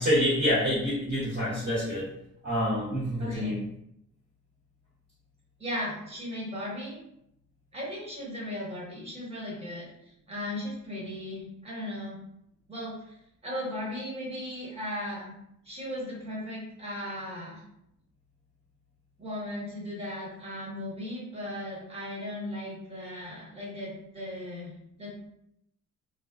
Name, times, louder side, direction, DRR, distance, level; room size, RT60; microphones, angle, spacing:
voice 1, 0.0-2.1 2.4-3.6, equal, 35° right, -10 dB, 1.0 m, -27 dB
voice 2, 3.2-3.6 5.6-7.0 7.7-9.8 10.3-12.2 12.7-13.2 13.4-15.3 15.6-17.6 19.2-25.3, left 1 dB, 20° right, -6 dB, 1.2 m, -37 dB
2.3 x 2.3 x 2.3 m, 0.78 s
cardioid pair, 90°, 30 cm